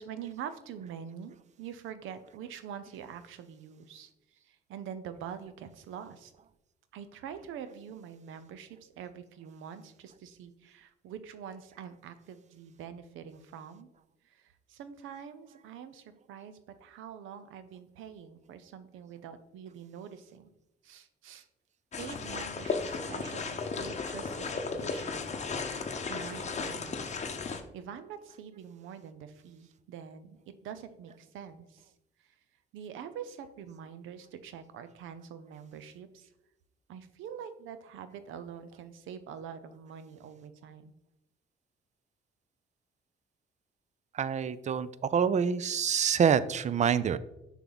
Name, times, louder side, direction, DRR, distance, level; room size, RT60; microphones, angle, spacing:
voice 1, 0.0-4.1 4.5-6.3 6.9-13.9 14.3-20.5 20.8-21.5 22.0-25.3 26.1-27.0 27.5-30.4 30.6-31.9 32.2-32.3 32.7-36.3 36.9-40.9, right 8 dB, 85° right, 11 dB, 0.6 m, -45 dB
sound 1, 21.9-27.6, left 4 dB, 35° left, 0.8 m, -35 dB
voice 2, 44.1-47.2, right 7 dB, 35° right, 16 dB, 0.4 m, -26 dB
6.6 x 4.7 x 4.0 m, 0.88 s
cardioid pair, 90°, 20 cm